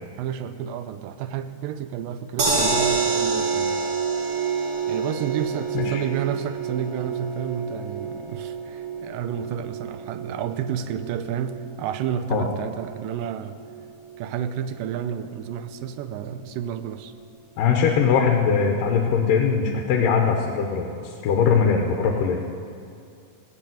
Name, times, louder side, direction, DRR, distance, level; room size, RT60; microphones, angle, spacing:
voice 1, 0.2-3.8 4.9-13.6 14.2-17.1, right 9 dB, 85° right, 11 dB, 2.3 m, -31 dB
sound 1, 2.4-14.6 15.0-15.1 15.4-15.5, right 4 dB, 50° right, 2.8 m, -28 dB
voice 2, 17.6-22.4, left 6 dB, 85° left, 1 dB, 2.6 m, -21 dB
16.5 x 7.9 x 9.2 m, 2.4 s
omnidirectional pair, 3.8 m